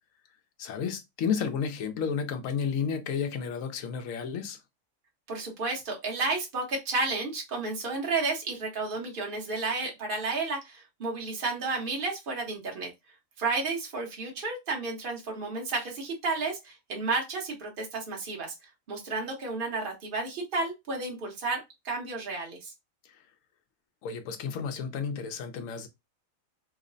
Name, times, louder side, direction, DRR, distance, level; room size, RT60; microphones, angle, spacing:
voice 1, 0.6-4.6 24.0-25.9, left 6 dB, 75° left, 1.0 m, -32 dB
voice 2, 5.3-12.9 13.4-18.5 18.9-21.6 21.8-22.7, right 3 dB, 45° right, 1.1 m, -32 dB
3.1 x 2.1 x 3.8 m
omnidirectional pair, 1.4 m